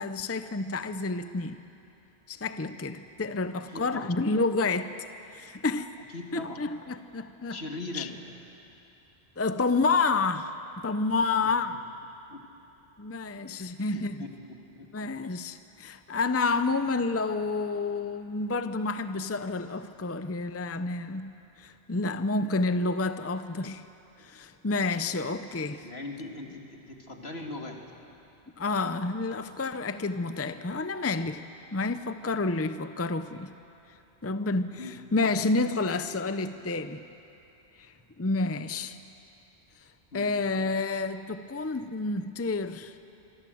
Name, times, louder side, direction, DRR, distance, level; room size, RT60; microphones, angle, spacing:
voice 1, 0.0-1.6 2.3-4.9 5.3-5.9 6.3-7.6 7.9-8.1 9.4-10.5 10.8-11.8 13.0-14.3 14.9-23.9 24.2-25.8 28.6-31.4 31.7-33.5 34.2-37.0 37.8-37.9 38.2-39.0 40.1-42.9, left 3 dB, 15° left, 10 dB, 0.6 m, -29 dB
voice 2, 3.5-4.1 6.1-6.6 7.5-8.1 12.3-12.4 13.4-13.7 13.9-14.3 14.7-14.9 25.8-27.8 34.8-35.0 40.1-40.3, left 2 dB, 70° left, 1 dB, 2.7 m, -40 dB
26.5 x 24.0 x 7.9 m, 2.8 s
omnidirectional pair, 1.1 m